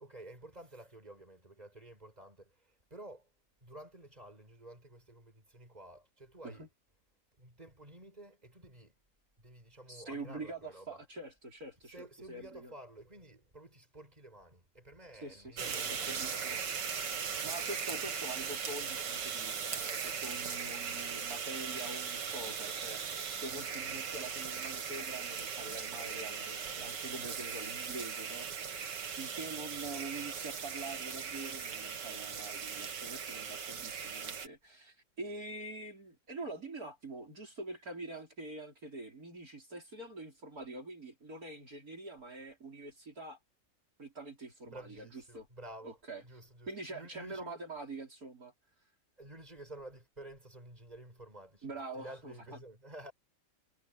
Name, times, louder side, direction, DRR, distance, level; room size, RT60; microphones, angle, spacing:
voice 1, 0.0-3.3 3.6-6.7 7.4-8.9 9.4-11.0 11.9-17.0 29.8-30.0 44.7-46.0 46.2-47.6 49.2-51.7 51.9-53.1, right 1 dB, 20° right, 6.5 m, -52 dB
voice 2, 9.9-12.7 15.2-16.6 17.4-23.0 23.3-43.4 44.0-45.5 45.8-46.2 46.7-48.5 51.6-52.6, right 2 dB, 55° right, 5.5 m, -45 dB
sound 1, 15.6-34.5, right 6 dB, 80° right, 2.3 m, -39 dB
omnidirectional pair, 1.9 m